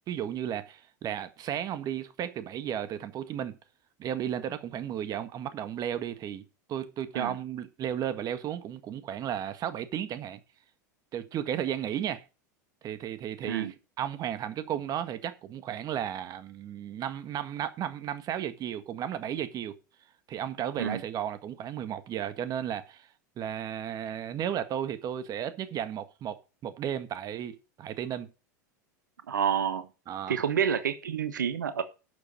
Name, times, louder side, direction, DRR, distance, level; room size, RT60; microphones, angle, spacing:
voice 1, 0.1-3.6 4.0-6.4 6.7-10.4 11.1-12.2 12.8-19.8 20.3-23.1 23.4-26.4 26.6-28.3 30.1-30.4, right 10 dB, 40° right, 1.7 m, -34 dB
voice 2, 29.3-29.9 30.3-31.8, right 8 dB, 85° right, 1.3 m, -28 dB
12.0 x 7.1 x 5.5 m
hypercardioid pair, 90°, 10 cm